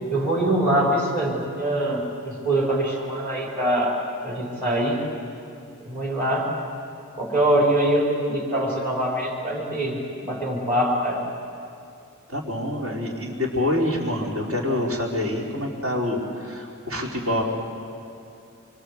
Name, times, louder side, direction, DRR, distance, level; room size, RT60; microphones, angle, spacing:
voice 1, 0.1-3.9 4.2-5.0 5.9-6.5 7.2-11.2, right 1 dB, 40° right, -3 dB, 5.1 m, -23 dB
voice 2, 12.3-17.4, left 1 dB, 70° right, -1 dB, 4.7 m, -26 dB
26.0 x 26.0 x 8.3 m, 2.5 s
head